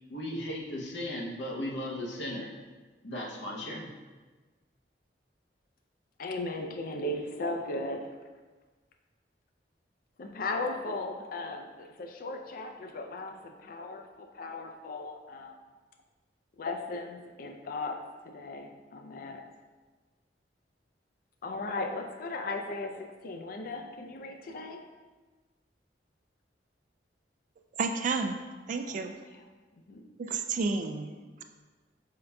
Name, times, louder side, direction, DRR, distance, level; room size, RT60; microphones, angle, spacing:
voice 1, 0.1-2.5 3.0-3.9, left 1 dB, 80° left, -2 dB, 0.8 m, -36 dB
voice 2, 6.2-8.2 10.2-15.5 16.6-19.4 21.4-24.8 28.8-29.0 29.3-29.4 29.9-30.1, left 2 dB, 55° left, 4 dB, 0.4 m, -37 dB
voice 3, 27.8-28.4 28.7-29.1 30.2-31.1, right 4 dB, 45° right, 6 dB, 0.3 m, -30 dB
5.2 x 3.7 x 2.3 m, 1.3 s
head